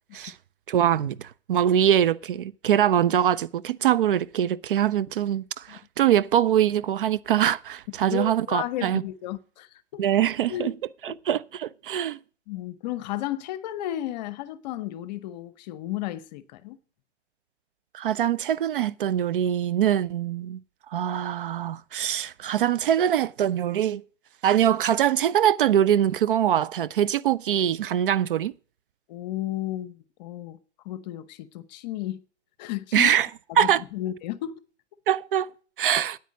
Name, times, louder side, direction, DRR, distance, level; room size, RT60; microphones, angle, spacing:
voice 1, 0.7-9.0 10.0-10.7 11.0-12.2 17.9-20.6 20.9-24.0 24.4-28.5 32.9-33.3 33.6-33.8 35.1-36.2, right 10 dB, 50° right, 0.5 m, -23 dB
voice 2, 8.1-10.0 10.5-10.7 11.1-11.2 12.5-16.8 29.1-30.6 30.8-32.2 32.6-33.1 33.5-34.6, left 13 dB, 35° left, 0.9 m, -33 dB
9.4 x 9.1 x 6.3 m
figure-of-eight pair, 120°, 36 cm